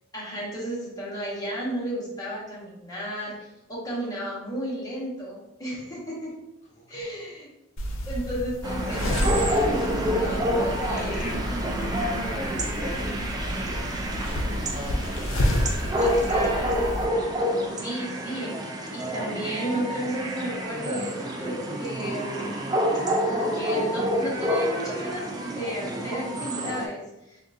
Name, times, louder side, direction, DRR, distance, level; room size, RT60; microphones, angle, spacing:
voice 1, 0.1-6.3 6.9-7.5 8.0-11.3 16.0-16.7 17.8-18.5 18.9-21.1 21.4-22.6 23.3-27.4, equal, 20° left, -6 dB, 1.0 m, -34 dB
voice 2, 6.8-7.2 10.7-16.7, left 1 dB, 35° left, -3 dB, 0.5 m, -42 dB
sound 1, 7.8-17.1, left 1 dB, 85° left, 0.5 m, -30 dB
sound 2, 8.6-26.9, equal, 20° right, 0.3 m, -28 dB
3.6 x 2.3 x 2.6 m, 0.90 s
head